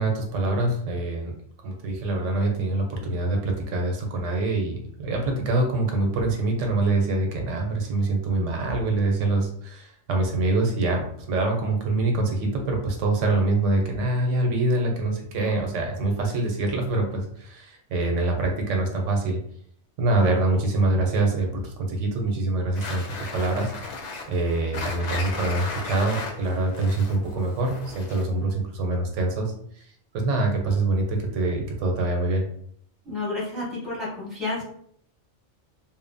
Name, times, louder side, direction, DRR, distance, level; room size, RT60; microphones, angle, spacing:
voice 1, 0.0-1.3 1.6-19.4 20.0-23.7 24.3-29.9 30.1-32.5, right 2 dB, 85° right, 2 dB, 1.0 m, -25 dB
sound 1, 22.7-28.4, left 3 dB, 75° left, 0.9 m, -35 dB
voice 2, 33.0-34.6, left 2 dB, ahead, -6 dB, 0.9 m, -30 dB
2.7 x 2.1 x 2.5 m, 0.65 s
omnidirectional pair, 1.2 m